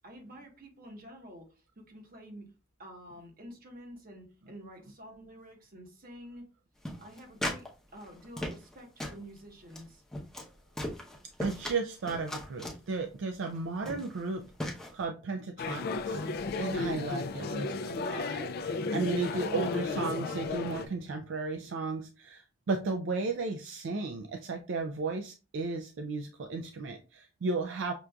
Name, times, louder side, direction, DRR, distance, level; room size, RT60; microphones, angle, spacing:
voice 1, 0.0-2.4 2.8-6.4 7.0-7.6 7.9-10.0, equal, 50° right, 2 dB, 1.1 m, -49 dB
sound 1, 6.9-7.7 8.0-8.7 9.0-9.2 9.7-9.8 10.1-10.5 10.8-11.8 12.1-12.8 13.5-13.6 13.9-14.2 14.6-14.9, left 1 dB, 5° left, 0.7 m, -37 dB
voice 2, 11.4-16.2 16.5-27.9, right 3 dB, 70° right, 4 dB, 0.4 m, -35 dB
sound 2, 15.6-20.9, left 3 dB, 50° left, 0.3 m, -33 dB
6.0 x 2.5 x 2.2 m, 0.33 s
head